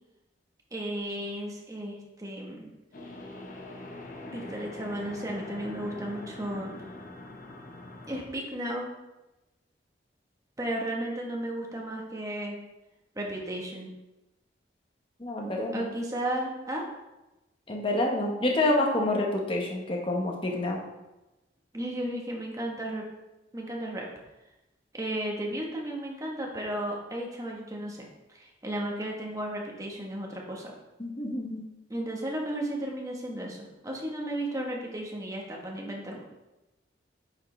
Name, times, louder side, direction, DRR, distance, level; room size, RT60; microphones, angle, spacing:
voice 1, 0.7-2.7 4.3-6.7 8.1-8.9 10.6-12.6 13.2-13.9 15.7-16.8 21.7-23.0 23.5-24.1 24.9-30.7 31.9-36.2, right 1 dB, 20° right, -1 dB, 1.2 m, -34 dB
sound 1, 2.9-8.2, left 2 dB, 50° left, 0.9 m, -43 dB
voice 2, 15.2-15.9 17.7-20.8 31.0-31.7, left 1 dB, 30° left, 0 dB, 1.2 m, -28 dB
8.8 x 4.9 x 3.3 m, 1.0 s
head